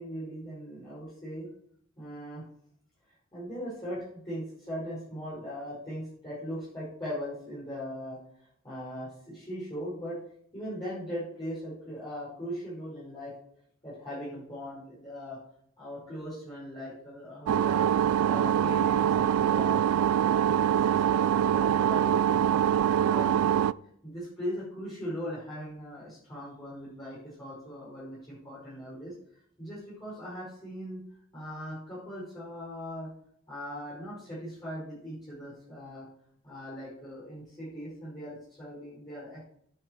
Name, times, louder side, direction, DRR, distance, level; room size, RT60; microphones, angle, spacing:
voice 1, 0.0-1.5 2.0-2.4 3.1-10.2 10.5-13.3 13.8-15.4 15.8-18.0 18.2-19.8 20.2-22.6 23.1-23.7 24.0-29.1 29.6-31.0 31.3-33.1 33.5-36.1 36.4-39.4, equal, 20° left, -10 dB, 5.2 m, -39 dB
sound 1, 17.5-23.7, right 9 dB, 85° right, 0.3 m, -24 dB
10.5 x 8.1 x 4.6 m, 0.67 s
head